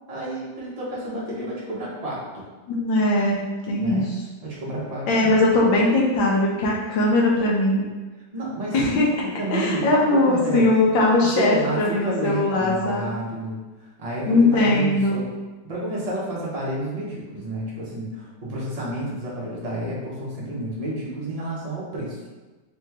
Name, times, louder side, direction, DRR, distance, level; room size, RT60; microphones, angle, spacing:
voice 1, 0.1-2.4 3.8-4.1 4.4-5.4 8.3-8.8 9.4-10.7 11.2-15.3 15.6-22.2, right 1 dB, 35° right, -5 dB, 0.6 m, -30 dB
voice 2, 2.7-3.4 3.7-4.1 5.1-7.9 8.7-9.1 9.5-13.1 14.3-15.2, left 2 dB, 80° left, -3 dB, 1.6 m, -20 dB
3.8 x 3.0 x 3.5 m, 1.2 s
omnidirectional pair, 2.0 m